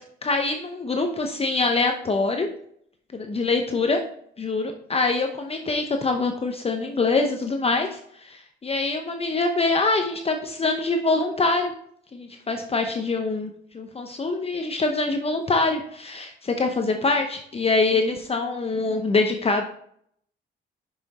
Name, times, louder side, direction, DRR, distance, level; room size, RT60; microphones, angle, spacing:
voice 1, 0.2-2.5 3.3-4.0 4.4-11.7 12.1-19.6, left 3 dB, 30° left, 4 dB, 0.8 m, -24 dB
5.9 x 5.6 x 4.1 m, 0.66 s
cardioid pair, 90°, 20 cm